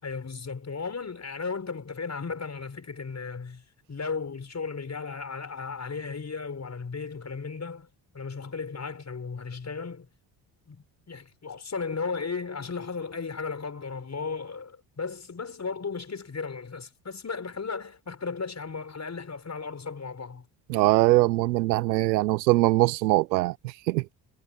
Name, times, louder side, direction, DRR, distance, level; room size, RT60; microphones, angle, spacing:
voice 1, 0.0-7.9 8.1-10.1 10.7-20.5, left 5 dB, 30° left, 6.2 m, -35 dB
voice 2, 20.7-24.1, right 19 dB, 90° right, 1.0 m, -22 dB
hypercardioid pair, 55°, 50 cm